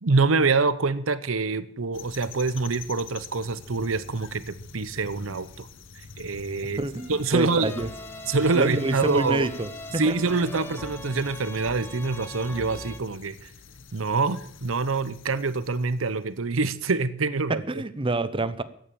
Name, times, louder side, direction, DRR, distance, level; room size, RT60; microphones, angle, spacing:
voice 1, 0.0-5.7 6.2-7.7 8.3-9.5 10.0-13.5 13.9-17.6, right 4 dB, 80° right, 15 dB, 0.9 m, -25 dB
sound 1, 1.9-16.3, left 5 dB, 65° left, 1.0 m, -46 dB
voice 2, 6.8-7.9 8.5-9.7 10.1-10.2 17.7-18.6, right 2 dB, 25° right, 13 dB, 0.7 m, -27 dB
sound 2, 7.0-10.8, left 1 dB, 45° left, 4.9 m, -51 dB
sound 3, 7.6-13.0, left 1 dB, 10° left, 1.0 m, -40 dB
14.5 x 9.2 x 8.6 m, 0.63 s
head